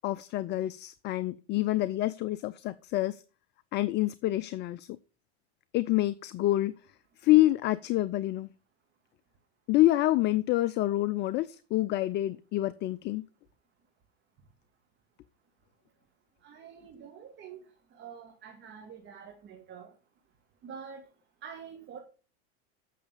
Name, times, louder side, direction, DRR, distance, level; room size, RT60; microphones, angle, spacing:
voice 1, 0.0-3.2 3.7-4.9 5.7-6.7 7.2-8.5 9.7-13.2, left 16 dB, 35° left, 15 dB, 0.5 m, -27 dB
voice 2, 16.4-17.6 17.9-19.9 20.6-21.0 21.4-22.0, right 7 dB, 35° right, 2 dB, 2.4 m, -46 dB
8.5 x 6.5 x 6.9 m, 0.36 s
supercardioid pair, 120°, 33 cm